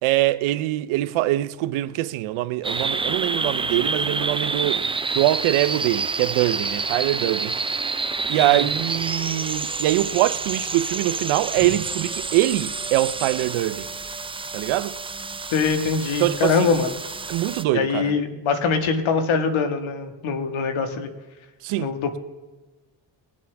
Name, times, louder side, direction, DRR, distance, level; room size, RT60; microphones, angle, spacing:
voice 1, 0.0-4.9 5.1-7.5 8.3-13.9 14.5-14.9 16.2-16.7 17.3-18.1 21.6-21.9, right 16 dB, 80° right, 0.8 m, -23 dB
sound 1, 2.6-17.6, right 4 dB, 10° right, 0.5 m, -28 dB
voice 2, 15.5-17.0 17.7-21.1 21.8-22.2, left 5 dB, 75° left, 1.8 m, -23 dB
22.0 x 7.5 x 3.5 m
supercardioid pair, 65°, 48 cm